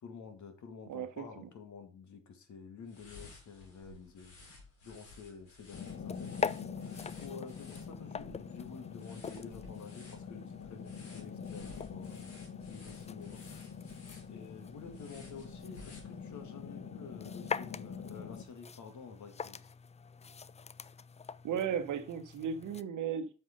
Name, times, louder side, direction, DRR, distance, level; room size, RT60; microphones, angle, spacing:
voice 1, 0.0-4.4 4.8-6.4 7.0-12.2 12.7-13.5 14.3-19.7, left 5 dB, 60° left, 2.1 m, -50 dB
voice 2, 0.9-1.5 21.4-23.3, right 7 dB, 65° right, 1.2 m, -35 dB
sound 1, 2.8-16.5, left 2 dB, 90° left, 3.4 m, -56 dB
sound 2, 5.7-18.5, left 6 dB, 40° left, 1.2 m, -46 dB
sound 3, 5.8-22.8, left 6 dB, 20° left, 0.4 m, -44 dB
7.6 x 5.3 x 5.2 m
hypercardioid pair, 55°, 32 cm